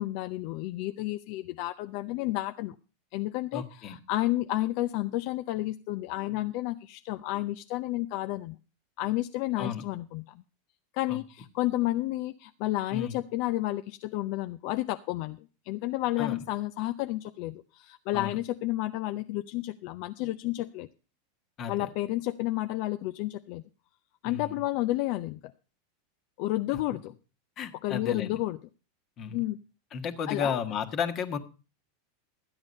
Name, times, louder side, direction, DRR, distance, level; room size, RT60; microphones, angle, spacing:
voice 1, 0.0-2.7 3.1-8.6 9.0-10.4 10.9-15.4 15.7-20.9 21.7-23.6 24.2-25.5 26.4-27.1 27.8-28.6 29.3-29.6 30.3-30.6, left 16 dB, 55° left, 11 dB, 0.5 m, -31 dB
voice 2, 3.5-4.0 9.6-9.8 11.1-11.2 12.9-13.2 16.2-16.4 18.1-18.4 21.6-21.9 24.2-24.6 27.6-28.4 29.2-29.4 29.9-31.4, left 7 dB, 40° left, 8 dB, 1.5 m, -33 dB
12.5 x 8.8 x 5.3 m, 0.35 s
hypercardioid pair, 100°, 0 cm